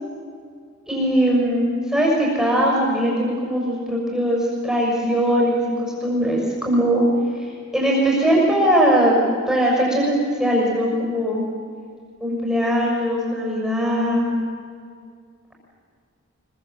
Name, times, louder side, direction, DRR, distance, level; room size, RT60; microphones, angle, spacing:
voice 1, 0.9-7.0 7.3-9.1 9.5-11.4 12.2-14.3, equal, 5° right, -3 dB, 6.3 m, -20 dB
26.0 x 23.5 x 7.8 m, 2.2 s
head